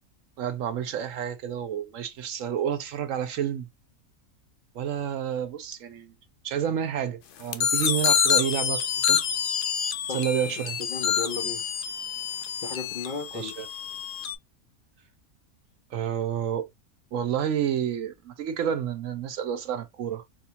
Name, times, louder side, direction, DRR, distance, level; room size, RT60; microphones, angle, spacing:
voice 1, 0.4-3.7 4.7-6.1 6.4-9.2 10.1-10.8 13.3-13.7 15.9-16.7 17.1-20.2, right 9 dB, 70° right, 0.9 m, -29 dB
sound 1, 7.5-14.3, left 8 dB, 80° left, 0.4 m, -27 dB
sound 2, 7.8-10.8, right 1 dB, 10° right, 0.9 m, -42 dB
voice 2, 10.1-10.5 10.8-11.7 12.6-13.5, left 4 dB, 50° left, 0.7 m, -35 dB
4.2 x 2.3 x 2.8 m
omnidirectional pair, 1.5 m